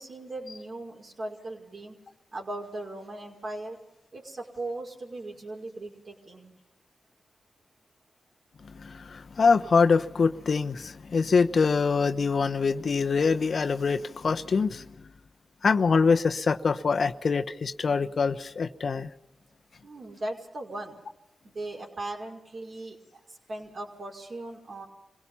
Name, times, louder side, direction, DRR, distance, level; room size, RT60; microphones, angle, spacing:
voice 1, 0.0-2.0 2.3-3.8 4.1-6.5 19.8-21.0 21.4-24.9, right 2 dB, 55° right, 5.4 m, -38 dB
voice 2, 8.6-14.9 15.6-19.1, left 5 dB, 65° left, 0.9 m, -24 dB
27.0 x 17.5 x 5.6 m
cardioid pair, 45°, 0 cm